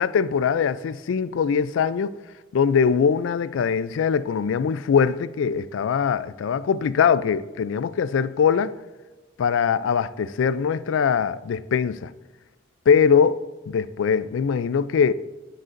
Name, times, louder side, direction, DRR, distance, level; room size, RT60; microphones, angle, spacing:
voice 1, 0.0-2.2 2.5-8.7 9.4-12.1 12.9-15.1, left 6 dB, 80° left, 0.3 m, -22 dB
13.0 x 6.5 x 2.6 m
head